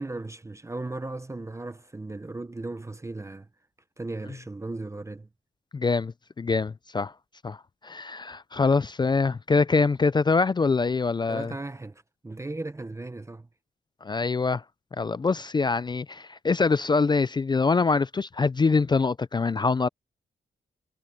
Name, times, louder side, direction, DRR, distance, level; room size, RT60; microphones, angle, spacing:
voice 1, 0.0-3.5 4.0-5.3 11.3-13.5, right 2 dB, 15° right, 0.7 m, -36 dB
voice 2, 5.7-7.1 7.4-7.6 7.8-11.5 14.0-14.6 14.9-19.9, left 4 dB, 25° left, 0.3 m, -24 dB
wide cardioid pair, 130°, 18 cm